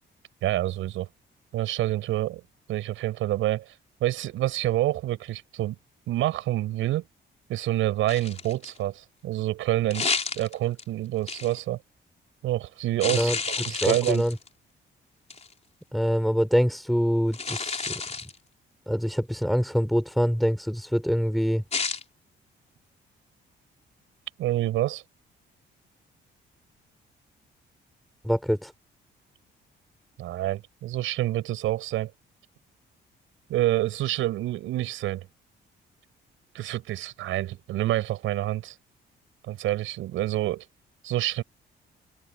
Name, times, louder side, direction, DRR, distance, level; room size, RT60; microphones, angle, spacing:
voice 1, 0.4-1.1 1.5-2.4 2.7-3.7 4.0-5.8 6.1-7.1 7.5-10.1 10.3-11.8 12.4-13.3 13.6-14.2 24.4-25.0 30.2-32.1 33.5-35.3 36.5-38.8 39.5-40.6 41.0-41.4, right 14 dB, 90° right, 6.4 m, -27 dB
sound 1, 8.1-8.8 9.9-10.8 11.3-11.6 13.0-14.5 15.3-15.5 17.3-18.4 21.7-22.0, left 4 dB, 35° left, 4.0 m, -30 dB
voice 2, 13.7-14.4 15.9-18.0 18.9-21.7 28.2-28.7, equal, ahead, 5.2 m, -25 dB
cardioid pair, 90°, 20 cm